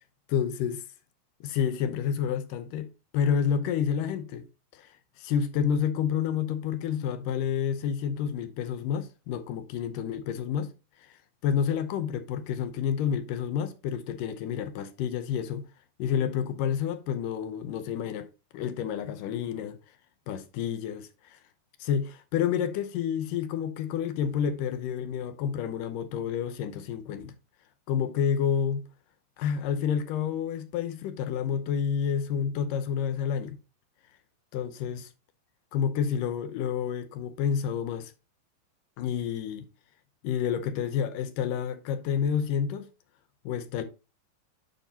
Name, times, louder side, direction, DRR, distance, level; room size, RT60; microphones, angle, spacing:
voice 1, 0.3-0.8 1.4-2.9 3.1-4.4 4.7-10.7 11.0-11.1 11.4-15.7 16.0-19.8 20.3-21.0 21.8-27.3 27.9-28.9 29.4-33.6 34.5-35.1 35.7-38.1 39.0-39.7 40.2-42.9 43.5-43.8, left 8 dB, 75° left, 2.2 m, -29 dB
8.9 x 5.3 x 2.8 m
omnidirectional pair, 4.1 m